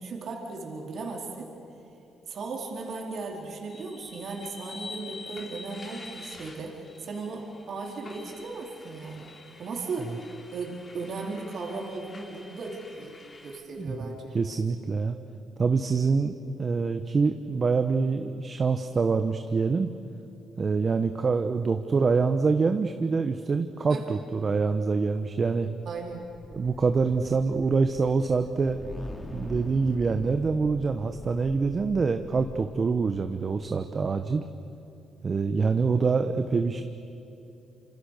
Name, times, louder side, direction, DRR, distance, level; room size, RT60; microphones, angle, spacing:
voice 1, 0.0-1.5 2.3-9.3 9.6-10.2 10.5-14.4 23.9-24.1 25.9-26.3, right 3 dB, 60° right, 0 dB, 4.3 m, -36 dB
sound 1, 3.6-13.6, left 3 dB, 40° left, 3.9 m, -46 dB
voice 2, 13.8-15.2 15.6-19.9 20.6-25.7 26.5-28.8 29.3-34.4 35.2-36.8, right 4 dB, 40° right, 7 dB, 1.2 m, -25 dB
sound 2, 25.6-33.5, left 1 dB, 20° left, 3.3 m, -43 dB
27.0 x 27.0 x 6.7 m, 2.9 s
cardioid pair, 90°, 0 cm